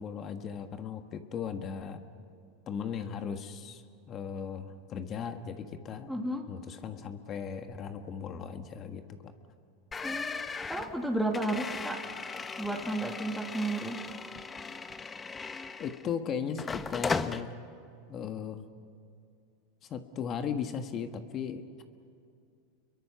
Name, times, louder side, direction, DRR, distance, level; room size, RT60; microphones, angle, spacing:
voice 1, 0.0-2.0 2.7-3.8 4.1-6.1 6.5-9.3 15.8-17.5 18.1-18.7 19.9-21.8, left 7 dB, 40° left, 7 dB, 1.6 m, -37 dB
voice 2, 6.1-6.5 10.0-12.0 12.6-14.0, right 1 dB, ahead, 2 dB, 2.5 m, -33 dB
sound 1, 9.9-16.1 16.6-17.4, left 4 dB, 20° left, 1.0 m, -37 dB
29.0 x 23.0 x 5.8 m, 2.5 s
hypercardioid pair, 105°, 0 cm